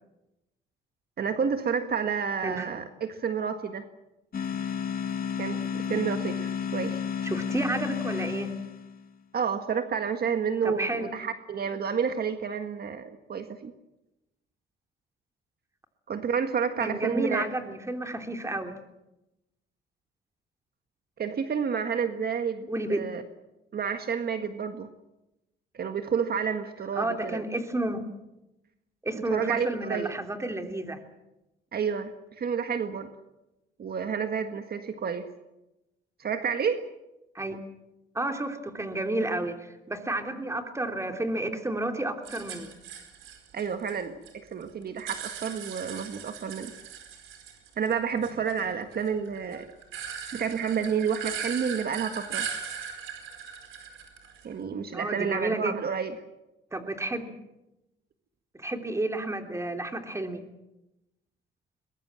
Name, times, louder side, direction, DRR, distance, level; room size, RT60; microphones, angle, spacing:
voice 1, 1.2-3.9 5.4-7.0 9.3-13.7 16.1-17.5 21.2-23.2 23.7-24.9 25.7-27.4 29.1-30.1 31.7-33.1 33.8-35.3 36.2-36.8 43.5-46.7 47.8-49.7 50.3-52.5 54.4-56.1, right 6 dB, 50° right, 7 dB, 1.7 m, -30 dB
sound 1, 4.3-9.0, left 7 dB, 50° left, 1.6 m, -32 dB
voice 2, 7.2-8.5 10.6-11.1 16.8-18.8 22.7-23.0 27.0-28.0 29.0-31.0 37.3-37.6 38.1-42.7 54.9-55.7 56.7-57.3 58.5-60.4, right 1 dB, 15° right, 5 dB, 3.2 m, -31 dB
sound 2, 42.2-44.3 44.6-47.9 48.2-54.6, right 7 dB, 90° right, 4.8 m, -39 dB
22.0 x 21.0 x 7.7 m, 0.94 s
cardioid pair, 90°, 20 cm